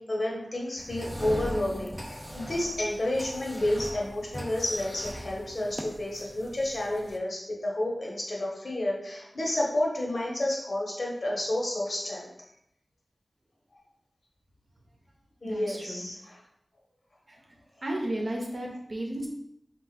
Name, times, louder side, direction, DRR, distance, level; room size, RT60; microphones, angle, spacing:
voice 1, 0.0-12.3 15.4-16.4, left 1 dB, 65° left, -3 dB, 1.1 m, -30 dB
sound 1, 0.8-7.2, equal, 5° right, 0.4 m, -40 dB
voice 2, 15.4-16.3 17.3-17.4 17.8-19.3, right 1 dB, 60° right, 0 dB, 0.8 m, -34 dB
3.6 x 2.4 x 4.0 m, 0.78 s
wide cardioid pair, 60°, 0 cm